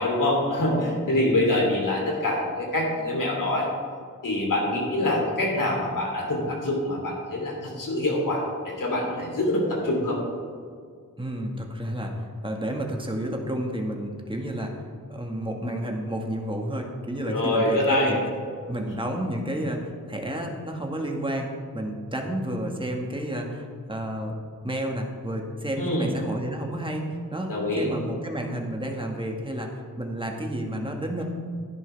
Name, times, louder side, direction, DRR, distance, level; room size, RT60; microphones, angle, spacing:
voice 1, 0.0-3.7 4.2-10.2 17.2-18.2 25.8-26.1 27.5-27.9, left 1 dB, 70° left, -1 dB, 3.2 m, -25 dB
voice 2, 11.2-18.2 18.7-24.3 24.6-31.2, right 1 dB, 15° right, 1 dB, 1.7 m, -31 dB
12.0 x 10.5 x 3.4 m, 2.1 s
wide cardioid pair, 80°, 33 cm